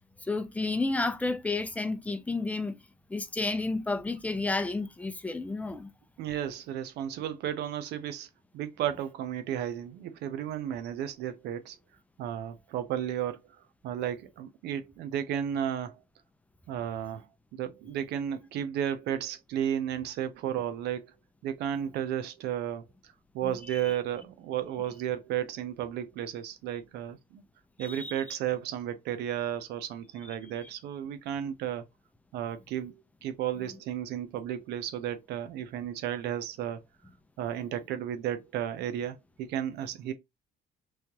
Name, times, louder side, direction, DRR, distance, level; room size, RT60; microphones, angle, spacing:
voice 1, 0.2-2.8 3.1-5.9 23.4-23.9 27.8-28.1, left 3 dB, 10° left, 0.6 m, -31 dB
voice 2, 6.2-11.8 12.2-13.4 13.8-16.0 16.7-17.3 17.5-21.1 21.4-27.4 27.8-31.8 32.3-32.9 33.2-36.8 37.4-40.1, right 10 dB, 80° right, 0.6 m, -33 dB
3.4 x 3.1 x 2.9 m
cardioid pair, 110°, 17 cm